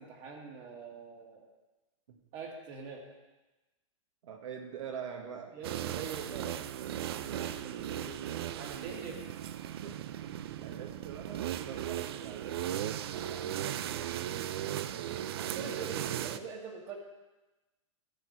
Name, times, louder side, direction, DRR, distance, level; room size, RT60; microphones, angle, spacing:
voice 1, 0.0-1.5 2.3-3.0 5.6-6.5 6.9-7.5 7.9-8.2 8.6-9.2 15.3-16.9, right 5 dB, 25° right, 0 dB, 1.7 m, -44 dB
voice 2, 4.2-5.6 7.3-7.5 9.8-10.3 10.6-13.9 14.5-16.4, right 7 dB, 75° right, 3 dB, 1.7 m, -45 dB
sound 1, 5.6-16.4, right 11 dB, 50° right, 0.5 m, -37 dB
13.5 x 4.7 x 8.5 m, 1.1 s
supercardioid pair, 170°, 17 cm